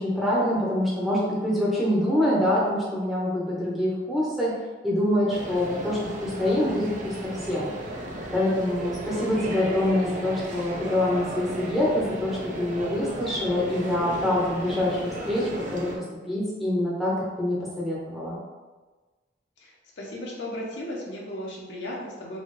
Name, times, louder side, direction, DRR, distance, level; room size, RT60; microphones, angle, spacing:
voice 1, 0.0-4.5 4.8-7.7 8.3-18.4, left 1 dB, ahead, -7 dB, 0.7 m, -25 dB
sound 1, 5.3-16.0, right 1 dB, 40° right, 0.5 m, -35 dB
voice 2, 19.6-22.4, left 1 dB, 70° left, -3 dB, 0.8 m, -36 dB
4.2 x 2.3 x 3.1 m, 1.3 s
head